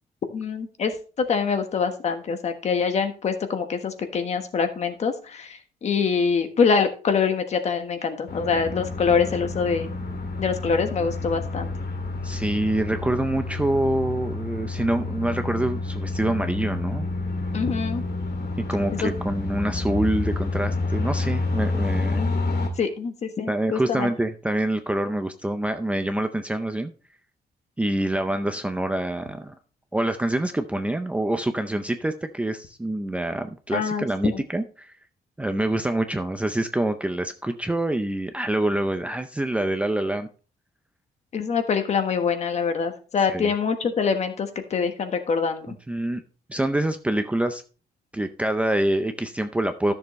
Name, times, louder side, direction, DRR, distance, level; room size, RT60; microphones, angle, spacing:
voice 1, 0.3-9.9 10.4-11.7 17.5-18.0 19.0-19.1 22.1-22.3 22.8-24.1 33.7-34.4 41.3-45.7, left 5 dB, 45° left, 7 dB, 1.3 m, -25 dB
sound 1, 8.3-22.7, left 3 dB, 70° left, 2.4 m, -29 dB
voice 2, 12.2-17.1 18.7-22.2 23.5-26.9 27.8-29.5 29.9-34.9 35.4-40.3 43.3-43.5 45.7-46.2 46.5-47.6 48.1-49.9, right 1 dB, 10° right, 7 dB, 0.5 m, -26 dB
13.0 x 6.9 x 3.1 m, 0.37 s
wide cardioid pair, 170°, 16 cm